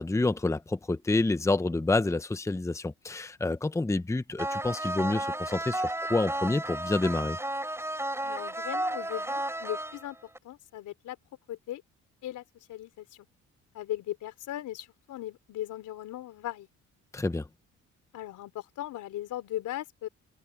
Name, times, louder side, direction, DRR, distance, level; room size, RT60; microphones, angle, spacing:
voice 1, 0.0-7.4 17.1-17.5, left 2 dB, 10° left, 0.9 m, -28 dB
sound 1, 4.4-10.4, right 1 dB, 10° right, 3.4 m, -33 dB
voice 2, 8.2-10.2 10.4-11.2 11.5-11.8 12.2-13.1 13.7-16.7 18.1-20.1, left 13 dB, 85° left, 3.8 m, -38 dB
cardioid pair, 90°, 30 cm